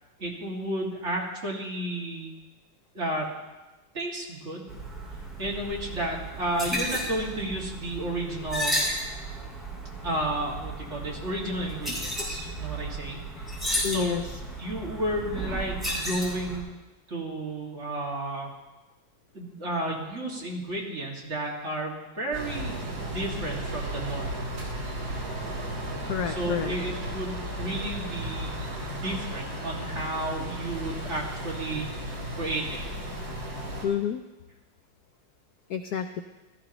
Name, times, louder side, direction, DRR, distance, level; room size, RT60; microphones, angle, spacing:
voice 1, 0.2-2.4 2.9-3.3 3.9-4.7 5.4-8.8 10.0-14.2 14.6-16.7 17.1-18.5 19.3-24.4 26.3-28.5 29.0-32.8, right 1 dB, 35° right, -3 dB, 2.4 m, -32 dB
sound 1, 4.7-16.6, right 1 dB, ahead, 4.6 m, -33 dB
voice 2, 13.8-14.2 26.0-26.7 33.8-34.2 35.7-36.2, left 8 dB, 75° left, 8 dB, 0.9 m, -29 dB
sound 2, 22.3-33.9, right 1 dB, 70° right, 3.6 m, -34 dB
17.0 x 13.5 x 3.0 m, 1.1 s
omnidirectional pair, 2.1 m